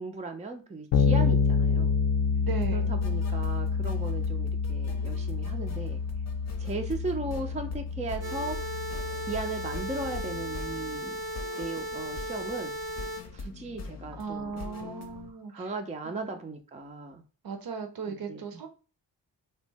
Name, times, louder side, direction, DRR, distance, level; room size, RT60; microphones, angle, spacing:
voice 1, 0.0-2.0 2.7-6.0 6.6-8.8 9.3-11.2 11.6-12.7 13.3-14.5 14.8-14.9 15.5-17.2 18.1-18.4, right 3 dB, 15° right, 4 dB, 0.5 m, -37 dB
Bass guitar, 0.9-10.6, left 5 dB, 85° left, 0.6 m, -28 dB
sound 1, 2.5-15.3, left 3 dB, 35° left, 0.7 m, -43 dB
voice 2, 2.5-2.9 14.1-15.7 16.0-16.4 17.4-18.7, right 5 dB, 50° right, 5 dB, 0.7 m, -37 dB
sound 2, 8.2-13.2, equal, 85° right, 1.0 m, -36 dB
2.7 x 2.1 x 3.3 m, 0.34 s
supercardioid pair, 45°, 45 cm